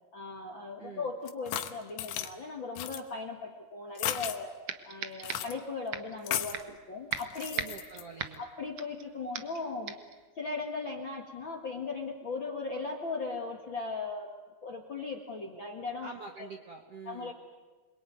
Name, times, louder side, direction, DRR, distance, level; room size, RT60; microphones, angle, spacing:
voice 1, 0.1-4.5 4.8-7.6 8.4-10.0 10.3-14.3 14.6-16.1 17.0-17.3, left 4 dB, 45° left, 3 dB, 1.6 m, -38 dB
voice 2, 0.8-1.1 7.5-8.4 16.0-17.3, right 4 dB, 60° right, 4 dB, 1.6 m, -46 dB
sound 1, 1.3-2.3 2.8-3.0 4.0-4.4 5.2-5.5 6.2-6.6 7.1-8.0, left 11 dB, 90° left, 3.4 m, -35 dB
sound 2, 4.1-4.2 4.7-5.6 5.9-6.2 6.5-6.8 7.1-9.0 9.3-9.6 9.9-10.2, right 8 dB, 90° right, 1.3 m, -38 dB
28.0 x 22.0 x 9.4 m, 1.3 s
omnidirectional pair, 4.8 m